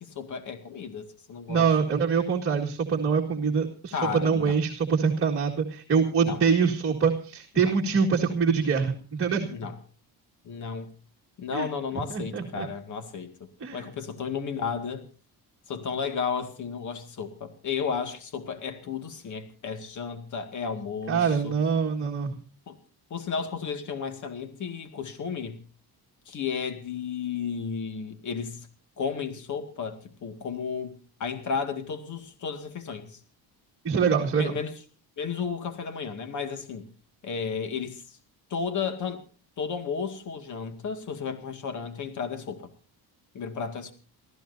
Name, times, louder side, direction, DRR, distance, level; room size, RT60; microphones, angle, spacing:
voice 1, 0.0-1.7 3.9-4.6 6.2-6.4 7.6-7.7 9.5-9.8 10.4-10.9 11.4-13.3 13.7-15.1 15.7-21.5 22.7-22.8 23.1-25.6 26.3-28.7 29.0-33.2 34.4-34.7 35.2-36.8 37.2-38.2 38.5-39.2 39.6-42.7 43.3-43.9, left 6 dB, 45° left, 2.1 m, -33 dB
voice 2, 1.5-9.5 11.5-11.7 12.1-12.7 13.6-13.9 21.1-22.3 33.8-34.6, right 6 dB, 30° right, 1.9 m, -24 dB
29.0 x 14.5 x 2.7 m
cardioid pair, 145°, 41 cm